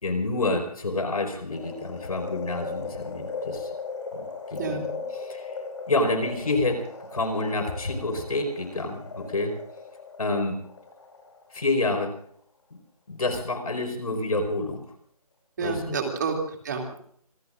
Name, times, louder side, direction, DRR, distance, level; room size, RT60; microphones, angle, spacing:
voice 1, 0.0-3.7 4.1-4.8 5.1-5.5 5.9-9.6 10.2-10.6 11.5-12.1 12.7-12.8 13.1-14.8 15.6-16.0, left 2 dB, 70° left, 6 dB, 5.0 m, -28 dB
sound 1, 1.5-11.8 12.2-12.3, left 4 dB, 50° left, 5.1 m, -38 dB
voice 2, 15.6-17.0, right 5 dB, 30° right, 2 dB, 2.7 m, -29 dB
26.5 x 21.0 x 2.6 m, 0.64 s
figure-of-eight pair, 170°, 20 cm